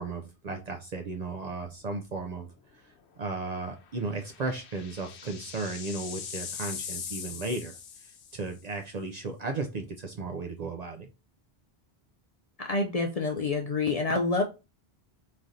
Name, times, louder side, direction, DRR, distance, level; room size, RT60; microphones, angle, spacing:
voice 1, 0.0-2.5 2.8-7.8 8.3-11.1, right 3 dB, 55° right, 4 dB, 0.5 m, -35 dB
sound 1, 1.7-2.0 2.4-2.5 3.9-8.5, left 7 dB, 90° left, 0.9 m, -41 dB
voice 2, 12.6-14.4, left 3 dB, 55° left, 2 dB, 0.4 m, -27 dB
3.7 x 3.2 x 2.6 m, 0.29 s
omnidirectional pair, 1.1 m